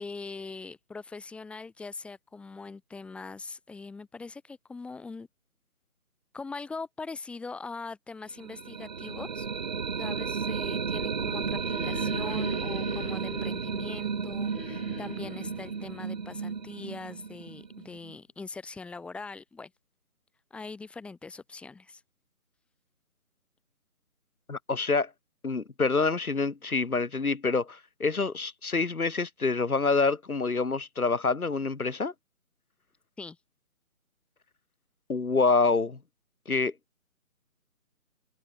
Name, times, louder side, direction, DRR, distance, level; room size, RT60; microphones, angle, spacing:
voice 1, 0.0-5.3 6.3-9.5 10.0-19.7 20.5-22.0 33.2-33.4, left 4 dB, 5° left, 3.8 m, -42 dB
sound 1, 8.4-18.1, right 6 dB, 30° right, 1.4 m, -33 dB
sound 2, 11.0-17.5, left 5 dB, 45° left, 2.4 m, -45 dB
voice 2, 24.5-25.1 25.4-32.1 35.1-36.0 36.5-36.7, left 4 dB, 85° left, 1.1 m, -27 dB
figure-of-eight pair, 150°, 43 cm